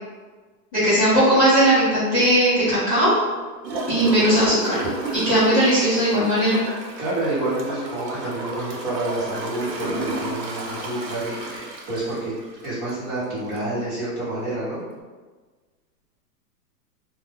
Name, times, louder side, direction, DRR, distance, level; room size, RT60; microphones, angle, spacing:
voice 1, 0.7-3.1 3.9-4.8 5.1-6.6, right 1 dB, 15° left, -19 dB, 0.5 m, -18 dB
Gurgling / Toilet flush, 3.6-13.0 13.5-13.6, right 2 dB, 80° right, 0.9 m, -32 dB
voice 2, 7.0-12.3 12.6-14.8, right 2 dB, 25° right, -11 dB, 1.1 m, -28 dB
2.4 x 2.2 x 3.5 m, 1.4 s
hypercardioid pair, 165°, 49 cm